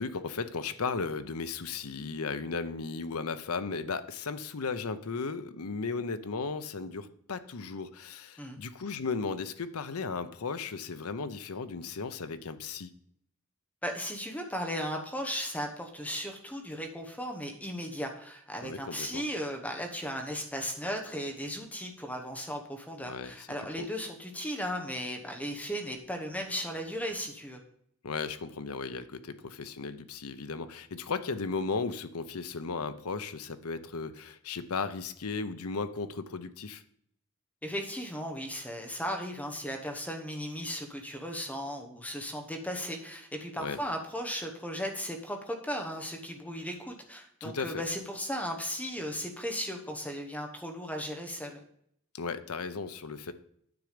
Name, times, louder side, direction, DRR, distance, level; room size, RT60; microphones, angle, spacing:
voice 1, 0.0-12.9 18.6-19.2 23.0-23.5 28.0-36.8 43.6-43.8 47.4-47.8 52.1-53.3, left 4 dB, 85° left, 11 dB, 0.7 m, -35 dB
voice 2, 13.8-27.6 37.6-51.6, equal, 5° left, 3 dB, 1.0 m, -36 dB
9.6 x 7.1 x 5.1 m, 0.68 s
head